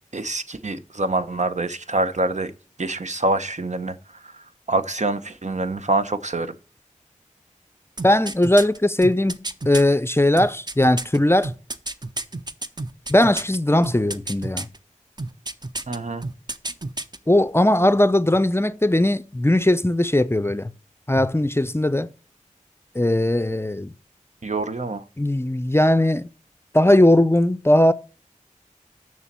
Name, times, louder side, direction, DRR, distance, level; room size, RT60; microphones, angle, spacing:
voice 1, 0.1-2.5 2.8-4.0 4.2-6.5 15.9-16.2 24.4-25.0, right 2 dB, 60° right, 0.8 m, -25 dB
voice 2, 8.0-11.5 13.1-14.7 17.3-20.7 21.1-22.1 22.9-23.9 25.2-26.3 26.7-27.9, left 1 dB, 20° left, 0.5 m, -19 dB
sound 1, 8.0-9.8 10.4-13.6 13.8-14.8 15.2-16.0 16.2-17.2 17.5-17.6, right 2 dB, 30° right, 0.7 m, -30 dB
7.0 x 6.3 x 7.3 m
wide cardioid pair, 60°, 13 cm